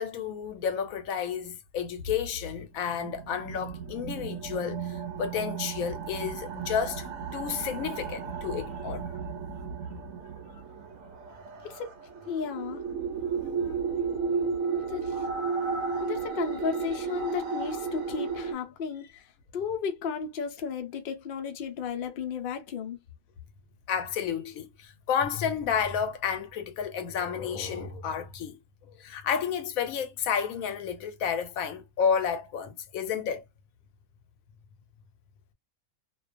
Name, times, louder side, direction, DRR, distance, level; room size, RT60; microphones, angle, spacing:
voice 1, 0.0-9.1 13.6-13.7 23.9-28.6 29.0-33.4, left 7 dB, 85° left, 1.0 m, -31 dB
sound 1, 2.8-18.5, right 5 dB, 80° right, 1.0 m, -34 dB
voice 2, 12.3-12.8 14.7-15.2 16.0-19.2 19.5-23.0, left 6 dB, 55° left, 0.6 m, -34 dB
2.4 x 2.2 x 2.4 m
omnidirectional pair, 1.4 m